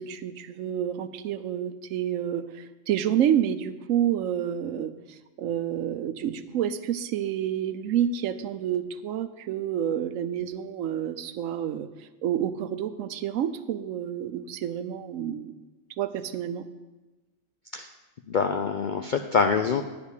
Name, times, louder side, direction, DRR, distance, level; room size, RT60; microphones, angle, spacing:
voice 1, 0.0-15.6 16.0-16.6, right 10 dB, 75° right, 12 dB, 1.0 m, -29 dB
voice 2, 18.3-19.8, left 5 dB, 65° left, 7 dB, 0.4 m, -25 dB
10.5 x 5.2 x 8.2 m, 1.1 s
omnidirectional pair, 1.4 m